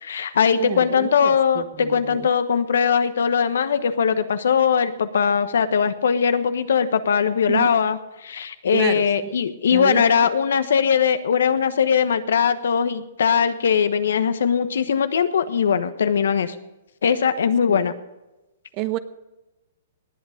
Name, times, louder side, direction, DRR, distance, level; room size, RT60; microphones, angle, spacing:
voice 1, 0.0-16.5 17.0-17.9, left 7 dB, 80° left, 11 dB, 1.1 m, -20 dB
voice 2, 0.6-2.3 7.5-7.8 8.7-9.4 9.7-10.3 17.7-17.8 18.7-19.0, right 15 dB, 35° right, 13 dB, 1.0 m, -30 dB
19.0 x 8.3 x 5.1 m, 1.0 s
hypercardioid pair, 140°, 0 cm